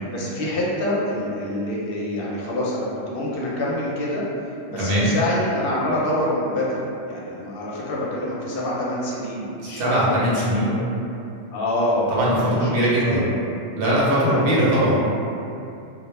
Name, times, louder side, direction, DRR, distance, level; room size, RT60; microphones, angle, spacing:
voice 1, 0.1-4.2 4.7-10.2 10.6-10.8 11.5-12.7 13.0-13.2 14.2-14.5, left 1 dB, 60° left, -6 dB, 0.7 m, -26 dB
voice 2, 4.8-5.1 9.6-10.8 12.1-13.3 13.8-15.0, right 1 dB, 60° right, -7 dB, 0.8 m, -20 dB
2.1 x 2.1 x 3.1 m, 2.6 s
omnidirectional pair, 1.2 m